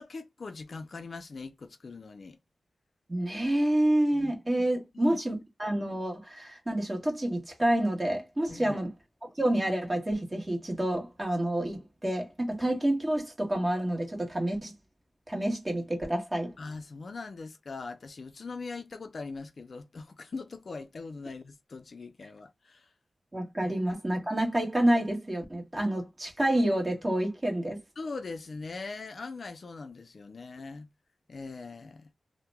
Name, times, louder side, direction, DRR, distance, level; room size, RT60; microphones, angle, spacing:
voice 1, 0.0-2.4 4.1-4.3 5.0-5.2 8.5-8.8 16.6-22.9 23.6-23.7 28.0-30.9 31.3-32.1, left 4 dB, 55° left, 0.4 m, -41 dB
voice 2, 3.1-8.9 9.3-14.7 15.3-16.5 23.3-27.8, right 1 dB, 25° right, 1.4 m, -28 dB
2.8 x 2.1 x 3.3 m
wide cardioid pair, 90°, 0 cm